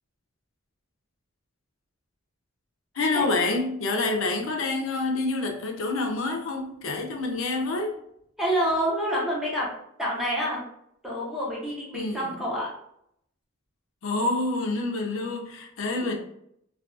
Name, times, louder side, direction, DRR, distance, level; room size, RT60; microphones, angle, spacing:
voice 1, 2.9-8.0 11.9-12.5 14.0-16.1, left 3 dB, 75° left, 0.5 m, -27 dB
voice 2, 8.4-9.7 10.0-10.6 11.0-12.7 16.0-16.2, equal, ahead, 0.8 m, -27 dB
2.3 x 2.3 x 2.4 m
head